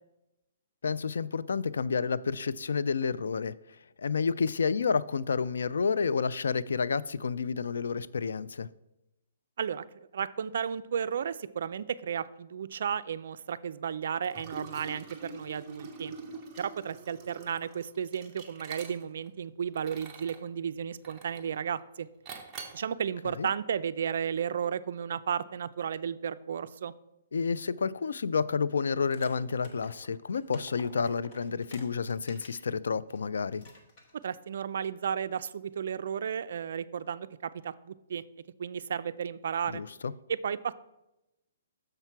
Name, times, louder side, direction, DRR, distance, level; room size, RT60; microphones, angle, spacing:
voice 1, 0.8-8.7 23.2-23.5 27.3-33.6 39.7-40.1, left 5 dB, 85° left, 17 dB, 0.3 m, -30 dB
voice 2, 10.1-16.1 16.6-22.1 22.7-26.9 34.2-38.2 38.6-39.8 40.3-40.7, right 7 dB, 50° right, 15 dB, 0.3 m, -33 dB
Liquid, 14.2-19.3 19.7-20.5 21.0-21.6 22.3-22.9, right 4 dB, 10° right, 0.7 m, -45 dB
sound 1, 29.1-32.7 33.1-33.2 33.6-34.3, left 3 dB, 25° left, 1.0 m, -52 dB
6.6 x 5.8 x 4.5 m, 0.90 s
hypercardioid pair, 175°, 0 cm